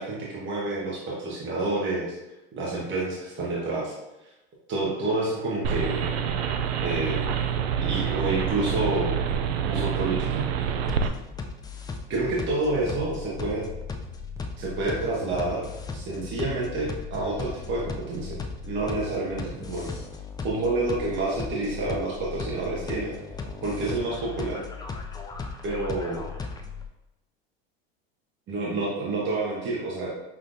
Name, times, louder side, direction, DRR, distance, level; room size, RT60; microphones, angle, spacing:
voice 1, 0.0-2.1 2.6-3.9 4.7-6.1 6.8-7.2 7.7-9.2 9.6-10.8 12.1-13.6 14.6-18.3 18.6-19.8 20.4-23.1 23.6-24.6 25.6-26.3 28.5-30.1, right 2 dB, 40° right, -5 dB, 1.2 m, -28 dB
sound 1, 5.6-11.1, right 7 dB, 90° right, 0.5 m, -27 dB
sound 2, 10.9-26.9, left 4 dB, 15° left, 0.4 m, -37 dB
sound 3, 12.7-20.1, left 2 dB, 10° right, 0.9 m, -45 dB
5.8 x 3.1 x 2.6 m, 1.0 s
supercardioid pair, 105°, 30 cm